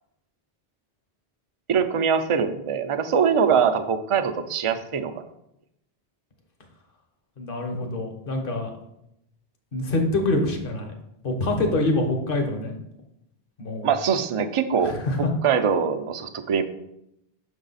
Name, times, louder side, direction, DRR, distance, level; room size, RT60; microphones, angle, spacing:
voice 1, 1.7-5.2 13.8-14.9 15.4-16.6, right 7 dB, 45° right, 8 dB, 0.4 m, -23 dB
voice 2, 7.4-8.7 9.7-10.9 11.2-12.7 13.6-13.9 14.8-15.3, left 2 dB, 60° left, 4 dB, 1.2 m, -25 dB
6.1 x 5.4 x 4.0 m, 0.81 s
omnidirectional pair, 1.1 m